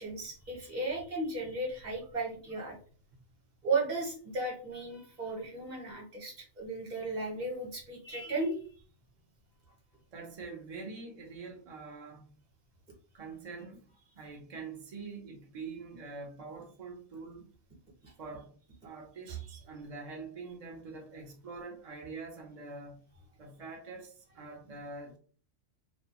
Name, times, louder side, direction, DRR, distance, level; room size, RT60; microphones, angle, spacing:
voice 1, 0.0-2.8 3.6-8.6 18.0-18.1 19.3-19.4, right 3 dB, 40° right, 0.9 m, -35 dB
voice 2, 10.1-12.3 13.1-13.9 14.2-17.4 18.2-18.5 18.8-23.0 23.4-25.2, right 4 dB, 65° right, 0.3 m, -45 dB
2.4 x 2.2 x 2.8 m
omnidirectional pair, 1.3 m